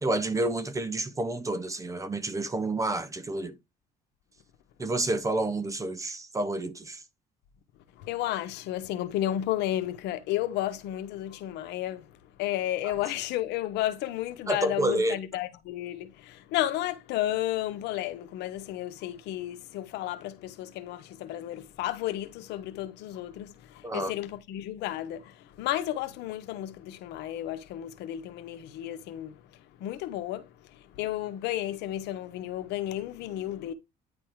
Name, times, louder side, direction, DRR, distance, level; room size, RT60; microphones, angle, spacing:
voice 1, 0.0-3.5 4.8-7.0 14.5-15.2 23.8-24.1, right 2 dB, 20° right, 0.9 m, -29 dB
voice 2, 8.0-33.7, left 13 dB, 85° left, 1.0 m, -33 dB
9.7 x 3.6 x 4.6 m
cardioid pair, 110°, 17 cm